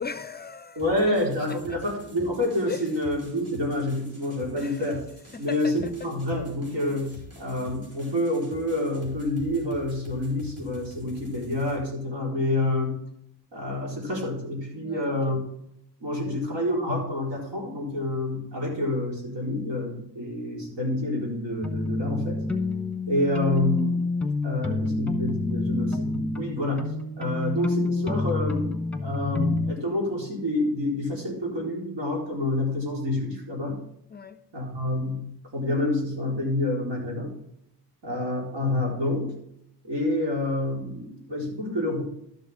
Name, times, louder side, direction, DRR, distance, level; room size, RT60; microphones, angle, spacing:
voice 1, 0.0-0.8 1.1-1.2 1.5-1.8 2.7-2.8 4.5-4.9 5.3-5.9 14.8-15.4 16.2-16.4 34.1-34.4, left 6 dB, 25° left, 0.4 m, -38 dB
sound 1, 0.8-11.8, left 1 dB, 35° right, 3.8 m, -47 dB
voice 2, 0.8-5.0 5.4-13.0 13.5-15.4 16.0-22.4 23.1-24.1 24.4-33.8 34.5-37.4 38.0-39.4 39.8-42.0, left 1 dB, 85° right, 4.2 m, -28 dB
sound 2, 21.6-29.7, left 2 dB, 5° left, 1.1 m, -28 dB
12.0 x 7.1 x 3.7 m
cardioid pair, 115°, 41 cm